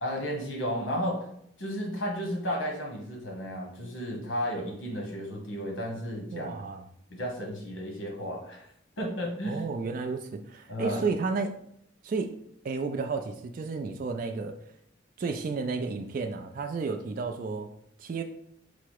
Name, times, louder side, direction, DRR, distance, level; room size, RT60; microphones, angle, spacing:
voice 1, 0.0-1.3 1.6-6.5 7.1-8.7 9.0-9.6 10.7-11.0, equal, 75° left, 1 dB, 1.2 m, -33 dB
voice 2, 6.3-6.8 9.5-11.5 12.0-12.3 12.6-14.6 15.2-17.7 18.0-18.2, right 4 dB, 45° right, 5 dB, 0.3 m, -32 dB
4.7 x 2.0 x 4.5 m, 0.71 s
head